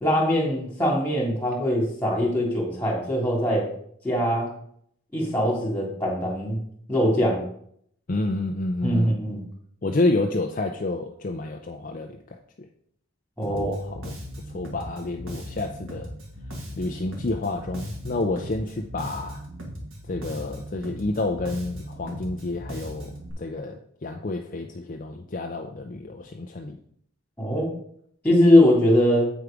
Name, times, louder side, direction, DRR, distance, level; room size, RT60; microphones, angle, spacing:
voice 1, 0.0-3.7 4.0-4.5 5.1-6.6 6.9-7.4 8.8-9.4 13.4-13.7 27.4-27.7 28.2-29.3, left 1 dB, 10° left, -3 dB, 2.4 m, -21 dB
voice 2, 8.1-9.1 9.8-12.4 13.5-14.2 14.5-16.1 16.8-19.4 20.1-26.8, left 2 dB, 40° left, 3 dB, 0.5 m, -29 dB
Bass guitar, 13.4-23.3, equal, 75° right, 2.0 m, -38 dB
8.1 x 4.7 x 5.0 m, 0.66 s
head